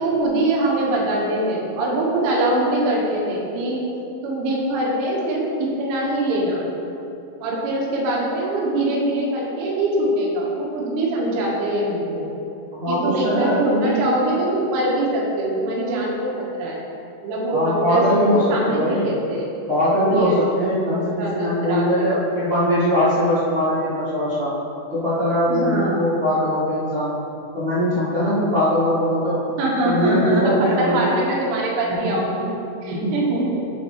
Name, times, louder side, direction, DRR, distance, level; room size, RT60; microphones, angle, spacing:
voice 1, 0.0-3.8 4.2-6.6 7.4-12.3 12.9-16.8 17.2-19.5 20.1-20.4 20.9-21.9 25.5-26.0 29.6-32.5 32.8-33.6, right 1 dB, 80° right, -3 dB, 3.7 m, -23 dB
voice 2, 12.7-14.0 17.5-19.1 19.7-24.5 24.9-27.1 27.5-29.4 29.8-31.1 31.9-32.1 32.9-33.2, equal, 60° right, -13 dB, 1.2 m, -21 dB
12.0 x 4.3 x 4.7 m, 2.7 s
omnidirectional pair, 5.5 m